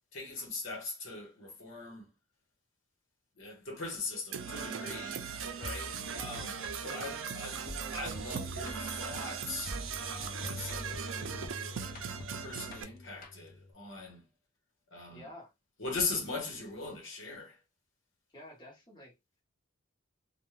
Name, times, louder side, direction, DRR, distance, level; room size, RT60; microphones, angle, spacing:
voice 1, 0.1-2.1 3.4-7.6 7.9-11.7 12.4-14.2 14.9-15.3 15.8-17.6, left 3 dB, 65° left, 1.0 m, -40 dB
Percussion / Brass instrument, 4.3-12.8, right 7 dB, 70° right, 0.4 m, -39 dB
sound 1, 5.6-13.7, left 1 dB, 45° left, 0.5 m, -45 dB
voice 2, 6.8-7.3 15.1-15.5 18.3-19.1, left 1 dB, 20° left, 1.1 m, -50 dB
2.3 x 2.2 x 3.1 m
head